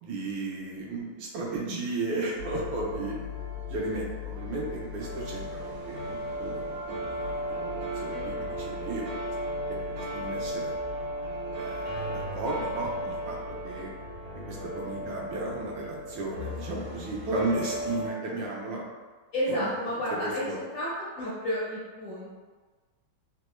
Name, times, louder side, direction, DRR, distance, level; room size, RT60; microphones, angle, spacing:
voice 1, 0.0-3.1 3.7-6.6 7.0-9.0 9.7-10.8 11.6-13.4 13.6-13.9 14.5-18.8 19.5-19.7 20.2-20.5, right 2 dB, 80° right, -3 dB, 1.5 m, -34 dB
sound 1, 2.4-18.1, equal, 60° right, 1.1 m, -35 dB
voice 2, 19.3-20.9 21.1-22.3, equal, 70° left, -9 dB, 0.7 m, -31 dB
3.8 x 2.2 x 3.0 m, 1.4 s
omnidirectional pair, 2.2 m